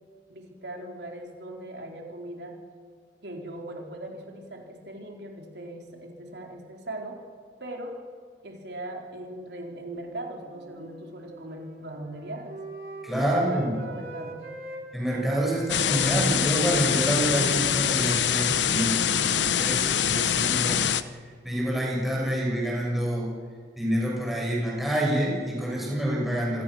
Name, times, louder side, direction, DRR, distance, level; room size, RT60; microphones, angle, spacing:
voice 1, 0.3-2.6 3.2-7.2 7.6-8.0 8.4-12.6 13.1-14.5, right 1 dB, 70° right, 1 dB, 3.9 m, -39 dB
Wind instrument woodwind instrument, 9.9-14.8 15.1-20.4, right 2 dB, 55° right, 3.4 m, -43 dB
voice 2, 13.0-13.8 14.9-20.8 21.4-23.3 23.8-26.6, right 1 dB, ahead, -4 dB, 6.4 m, -27 dB
sound 1, 15.7-21.0, left 9 dB, 85° left, 0.8 m, -24 dB
27.5 x 20.0 x 6.3 m, 2.1 s
head